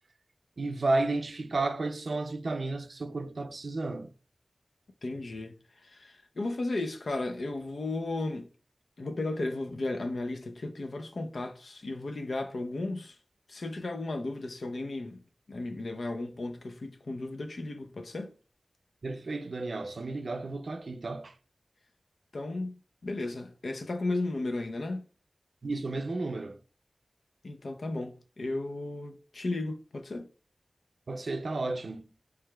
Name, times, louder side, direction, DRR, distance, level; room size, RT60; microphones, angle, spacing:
voice 1, 0.6-4.1 19.0-21.3 25.6-26.6 31.1-32.1, right 2 dB, 70° right, 0.4 m, -32 dB
voice 2, 5.0-5.5 5.8-8.5 9.0-13.2 13.5-15.2 15.5-18.3 22.3-25.1 27.4-30.3, left 2 dB, 85° left, 0.6 m, -34 dB
4.8 x 3.3 x 2.3 m
wide cardioid pair, 80°, 0 cm